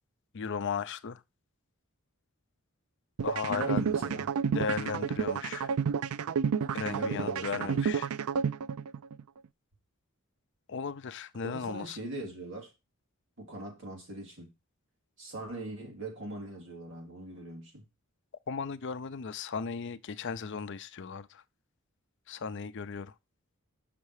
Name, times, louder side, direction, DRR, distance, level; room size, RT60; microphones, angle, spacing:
voice 1, 0.3-1.2 3.2-3.8 4.5-5.7 6.7-8.1 10.7-12.0 18.5-21.4 22.3-23.1, left 5 dB, 55° left, 0.5 m, -36 dB
sound 1, 3.2-9.2, right 6 dB, 80° right, 0.4 m, -30 dB
voice 2, 3.5-4.3 6.8-7.9 11.4-12.7 13.4-14.5 15.2-17.9, right 2 dB, 60° right, 3.4 m, -40 dB
6.5 x 5.9 x 4.7 m
head